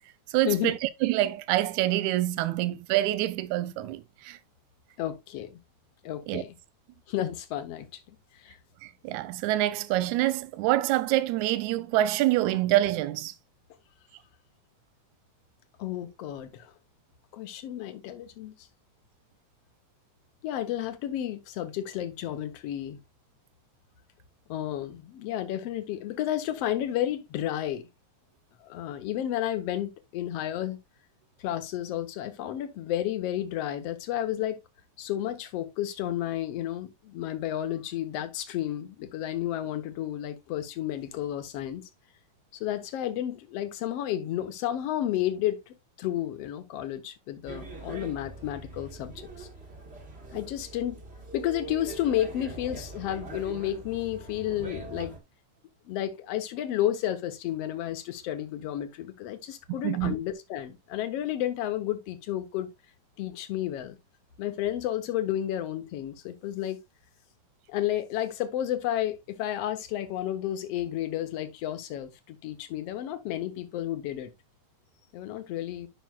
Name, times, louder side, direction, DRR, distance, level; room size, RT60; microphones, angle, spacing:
voice 1, 0.3-4.4 6.3-6.4 8.8-13.3 59.8-60.1, right 15 dB, 85° right, 2.0 m, -26 dB
voice 2, 5.0-5.5 6.0-6.6 7.1-8.0 8.4-8.6 15.8-16.7 17.3-18.5 20.4-23.0 24.5-27.9 28.6-30.8 31.4-34.6 35.0-41.8 42.6-49.5 50.3-51.0 51.3-55.1 55.9-62.7 63.2-64.0 64.4-66.8 67.7-74.3 75.1-75.9, left 12 dB, 65° left, 2.0 m, -32 dB
sound 1, 47.4-55.2, right 3 dB, 30° right, 1.2 m, -43 dB
11.5 x 5.9 x 2.3 m
omnidirectional pair, 3.4 m